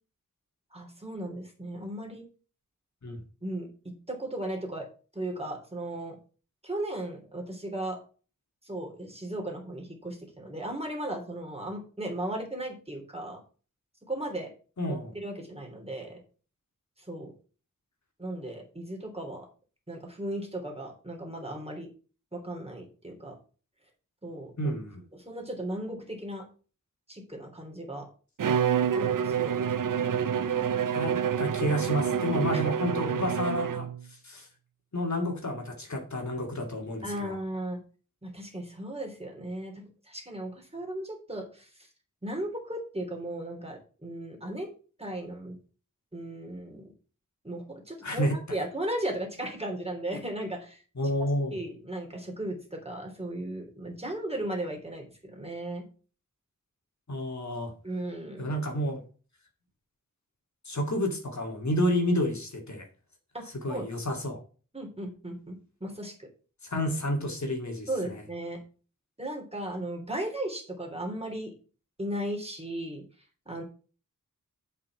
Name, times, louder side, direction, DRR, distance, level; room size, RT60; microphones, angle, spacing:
voice 1, 0.7-2.2 3.4-4.9 5.1-6.2 6.6-8.0 8.6-13.4 14.1-14.5 14.9-16.2 17.1-17.3 18.2-19.5 19.9-21.9 22.3-23.4 24.2-24.7 25.1-26.4 27.1-28.1 28.9-29.5 32.5-32.6 37.0-37.8 38.2-41.7 42.2-44.7 45.0-45.6 46.1-46.9 47.4-50.8 51.5-55.8 57.8-58.5 63.3-63.9 64.7-66.3 67.9-68.6 69.2-71.5 72.0-73.0 73.5-73.6, right 1 dB, 20° right, 2 dB, 3.3 m, -36 dB
voice 2, 14.8-15.1 24.6-25.0 30.9-33.9 34.2-34.5 34.9-37.4 48.0-48.6 51.0-51.6 57.1-57.7 58.4-59.0 60.6-62.9 63.6-64.4 66.6-68.2, equal, 60° left, 2 dB, 2.3 m, -30 dB
Bowed string instrument, 28.4-34.0, right 8 dB, 70° right, 0.6 m, -27 dB
7.5 x 5.8 x 6.1 m, 0.37 s
wide cardioid pair, 60°, 33 cm